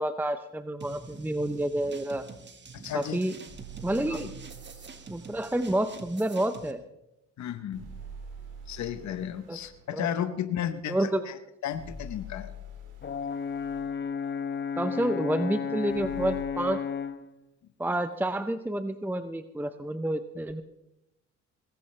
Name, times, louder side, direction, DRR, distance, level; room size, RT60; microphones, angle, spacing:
voice 1, 0.0-2.2 2.9-3.4 3.8-4.3 5.1-6.8 9.5-9.6 9.9-10.1 10.9-11.2 14.8-16.8 17.8-20.6, right 1 dB, 5° right, 10 dB, 0.7 m, -29 dB
sound 1, 0.8-6.7, right 4 dB, 35° right, 1.5 m, -47 dB
voice 2, 2.7-3.2 4.1-4.2 7.4-7.9 8.7-12.5, left 10 dB, 65° left, 10 dB, 1.0 m, -34 dB
sound 2, 3.5-5.7 7.7-9.8 11.7-13.9 15.9-16.4, equal, 85° right, 3.4 m, -45 dB
Brass instrument, 13.0-17.3, left 6 dB, 35° left, 0.9 m, -33 dB
19.5 x 16.0 x 3.3 m, 0.87 s
cardioid pair, 90°, 30 cm